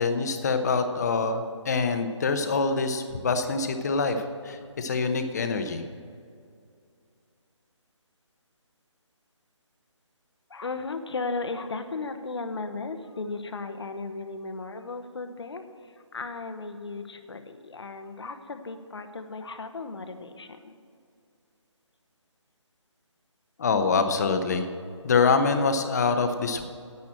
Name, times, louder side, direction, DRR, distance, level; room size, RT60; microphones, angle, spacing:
voice 1, 0.0-5.8 23.6-24.7 25.0-26.6, left 4 dB, 35° left, 8 dB, 0.9 m, -25 dB
voice 2, 10.5-20.8, left 3 dB, 60° left, 8 dB, 1.1 m, -36 dB
10.5 x 8.4 x 7.6 m, 2.3 s
figure-of-eight pair, 155°, 16 cm